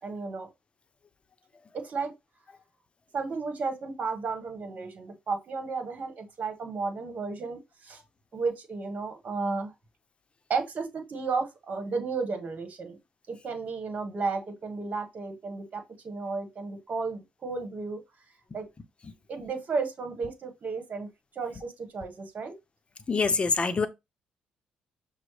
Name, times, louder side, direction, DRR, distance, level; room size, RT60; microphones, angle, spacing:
voice 1, 0.0-0.5 1.7-2.1 3.1-8.0 8.3-9.7 10.5-13.0 13.3-18.0 18.5-18.6 19.3-21.1 21.3-22.5, right 4 dB, 50° right, 1.3 m, -33 dB
voice 2, 23.1-23.9, left 4 dB, 35° left, 0.7 m, -25 dB
6.1 x 2.1 x 3.2 m
supercardioid pair, 65°, 3 cm